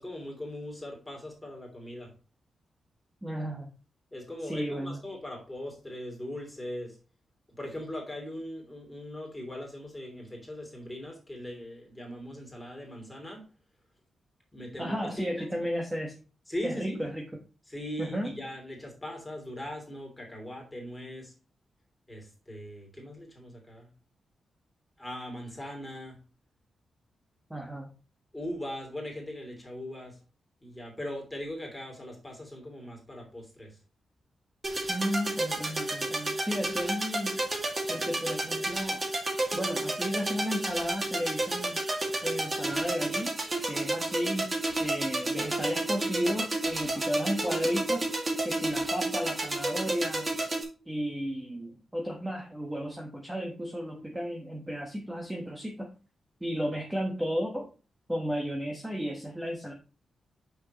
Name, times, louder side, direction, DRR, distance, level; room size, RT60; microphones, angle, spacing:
voice 1, 0.0-2.1 4.1-7.0 7.6-13.4 14.5-15.6 16.5-17.0 17.7-21.3 22.1-23.9 25.0-26.2 28.3-30.2 30.6-33.8 46.9-47.1, left 1 dB, 10° left, 0 dB, 3.0 m, -40 dB
voice 2, 3.2-3.7 4.4-5.0 14.8-16.1 16.6-17.2 18.0-18.3 27.5-27.9 34.9-37.4 37.9-39.0 39.5-41.8 42.2-43.4 43.7-44.5 44.8-48.1 48.4-50.3 50.9-55.9 56.4-57.7 58.1-59.7, equal, 5° right, 1 dB, 1.2 m, -33 dB
sound 1, 34.6-50.6, right 2 dB, 25° right, 2.1 m, -31 dB
8.4 x 6.4 x 3.0 m, 0.34 s
wide cardioid pair, 170°, 0 cm